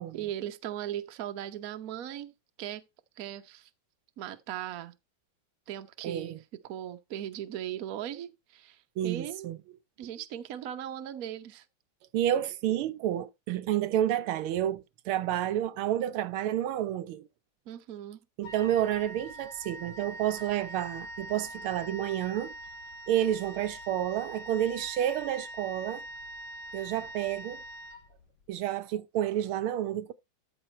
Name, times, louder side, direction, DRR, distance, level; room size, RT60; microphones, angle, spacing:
voice 1, 0.1-2.3 2.6-2.8 3.2-3.7 4.2-4.9 5.7-9.5 10.0-11.6 17.7-18.2, right 11 dB, 55° right, 1.1 m, -38 dB
voice 2, 6.0-6.4 9.0-9.6 12.1-17.3 18.4-22.5 23.1-26.0 26.7-27.6 28.5-30.1, right 11 dB, 90° right, 1.6 m, -30 dB
Wind instrument woodwind instrument, 18.4-28.5, right 1 dB, 85° left, 2.5 m, -44 dB
13.5 x 6.0 x 4.3 m
omnidirectional pair, 2.3 m